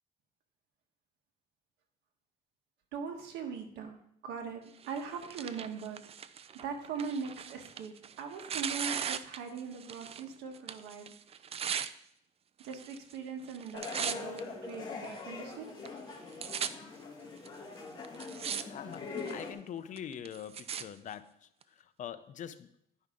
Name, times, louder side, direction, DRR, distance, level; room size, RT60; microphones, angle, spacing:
voice 1, 2.9-4.0 4.2-4.6 4.9-6.0 6.6-11.1 12.6-15.7, right 5 dB, 85° right, 1.3 m, -40 dB
Tearing, 4.8-10.3 10.5-11.9 12.6-13.2 13.4-14.4 15.0-15.1 15.9-16.0 16.1-16.7 17.5-17.6 18.0-18.6 18.9-19.4 20.0-20.8 21.6-21.7, right 8 dB, 35° right, 0.4 m, -38 dB
sound 1, 13.7-19.5, left 4 dB, 25° left, 1.9 m, -42 dB
voice 2, 18.7-21.5 21.8-22.7, left 9 dB, 50° left, 0.6 m, -44 dB
10.5 x 5.5 x 3.7 m
cardioid pair, 110°, 17 cm